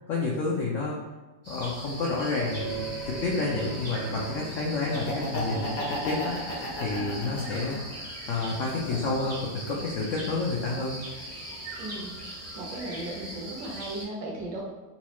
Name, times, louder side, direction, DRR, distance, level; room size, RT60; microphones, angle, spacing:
voice 1, 0.1-1.0 1.5-7.8 8.3-10.9, left 3 dB, 85° left, -3 dB, 0.6 m, -30 dB
sound 1, 1.4-14.1, right 1 dB, 15° right, 0.5 m, -40 dB
sound 2, 2.5-8.1, right 4 dB, 40° left, 0.6 m, -40 dB
Laughter, 4.9-7.9 8.4-9.5, left 1 dB, 65° left, 1.0 m, -34 dB
voice 2, 11.8-12.1 12.5-14.6, right 2 dB, 70° right, -2 dB, 1.3 m, -36 dB
4.2 x 2.3 x 2.9 m, 1.2 s
omnidirectional pair, 1.9 m